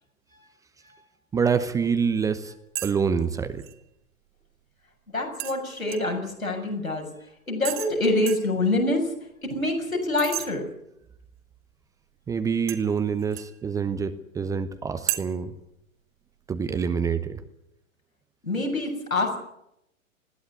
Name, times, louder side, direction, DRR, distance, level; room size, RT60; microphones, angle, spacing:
voice 1, 1.3-2.5 2.8-3.6 12.3-15.5 16.5-17.4, right 6 dB, 10° right, 11 dB, 0.8 m, -26 dB
sound 1, 2.7-3.0 3.2-3.7 5.4-6.2 7.6-7.9 8.3-8.5 10.2-10.5 12.7-13.6 15.1-15.2, right 14 dB, 25° right, 1.5 m, -32 dB
voice 2, 5.1-7.1 7.5-9.1 9.4-10.7 18.4-19.4, left 2 dB, 85° left, 1 dB, 7.1 m, -25 dB
20.5 x 16.5 x 9.9 m, 0.81 s
figure-of-eight pair, 110°, 41 cm